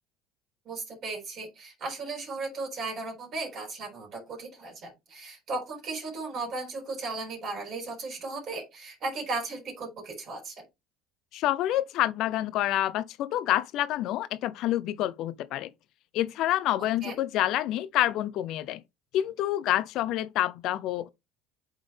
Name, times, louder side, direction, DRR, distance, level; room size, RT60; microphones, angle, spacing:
voice 1, 0.7-10.6 17.0-17.2, right 3 dB, 50° right, 3.8 m, -36 dB
voice 2, 11.3-15.7 16.1-18.8 19.1-21.1, left 13 dB, 65° left, 0.6 m, -28 dB
8.8 x 3.7 x 3.5 m
supercardioid pair, 85°, 0 cm